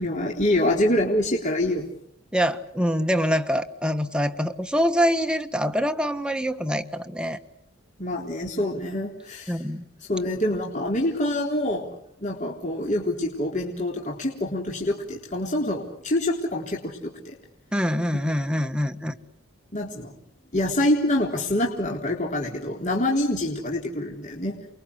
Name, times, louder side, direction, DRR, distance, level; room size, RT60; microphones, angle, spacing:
voice 1, 0.0-1.9 8.0-9.6 10.1-11.9 12.2-17.4 19.7-20.1 20.5-24.6, left 1 dB, 35° left, 0 dB, 3.8 m, -26 dB
voice 2, 2.3-7.4 9.5-9.8 17.7-19.2, equal, 5° right, 7 dB, 1.6 m, -25 dB
29.5 x 23.0 x 8.4 m, 0.71 s
head